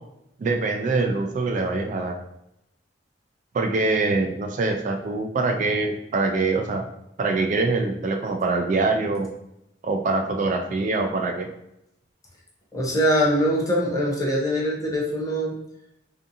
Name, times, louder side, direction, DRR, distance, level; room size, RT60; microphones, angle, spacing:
voice 1, 0.4-2.1 3.5-6.9 7.2-9.3 9.8-11.5, right 3 dB, 45° right, 4 dB, 0.3 m, -24 dB
voice 2, 12.7-15.5, equal, 20° left, -3 dB, 0.6 m, -23 dB
2.5 x 2.4 x 2.6 m, 0.82 s
head